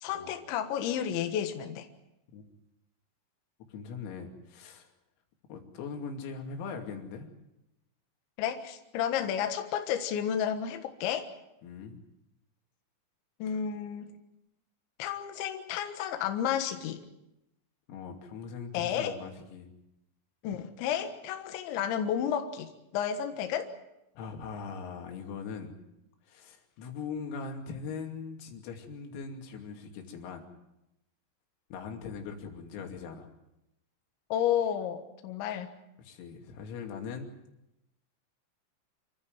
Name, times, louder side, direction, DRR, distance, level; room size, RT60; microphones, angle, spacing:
voice 1, 0.0-1.9 8.4-11.3 13.4-14.1 15.0-17.0 18.7-19.1 20.4-23.7 34.3-35.7, left 9 dB, 70° left, 6 dB, 3.5 m, -31 dB
voice 2, 3.7-4.9 5.5-7.3 11.6-12.0 17.9-19.7 24.2-25.7 26.3-30.5 31.7-33.3 36.0-37.3, left 5 dB, 90° left, 3 dB, 5.5 m, -41 dB
27.5 x 15.0 x 9.1 m, 0.89 s
omnidirectional pair, 6.0 m